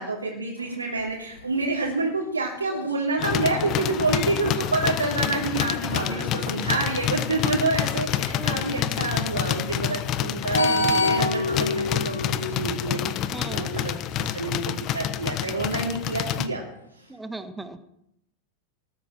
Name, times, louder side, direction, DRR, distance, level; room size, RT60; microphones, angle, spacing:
voice 1, 0.0-16.6, right 3 dB, 80° right, -3 dB, 3.0 m, -28 dB
sound 1, 0.6-7.1 7.9-13.5 13.8-14.1 15.8-15.9, left 2 dB, 70° left, 2.0 m, -30 dB
sound 2, 3.2-16.5, left 11 dB, 35° left, 1.1 m, -28 dB
voice 2, 6.1-6.6 8.3-9.0 10.5-11.0 13.3-13.7 17.1-17.8, right 2 dB, 10° right, 11 dB, 1.4 m, -38 dB
18.5 x 9.9 x 7.5 m, 0.79 s
figure-of-eight pair, 90°, 0 cm